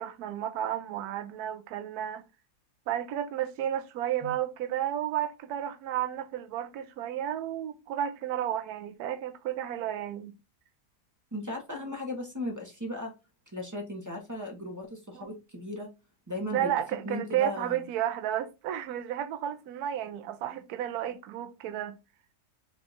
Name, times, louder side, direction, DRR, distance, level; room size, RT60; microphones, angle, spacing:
voice 1, 0.0-2.2 2.9-10.4 15.1-15.3 16.5-22.0, right 11 dB, 75° right, 1.1 m, -32 dB
voice 2, 11.3-13.1 13.5-15.9 16.3-16.7 17.0-17.8, left 1 dB, 15° right, 0.6 m, -36 dB
4.5 x 2.4 x 3.8 m
omnidirectional pair, 1.7 m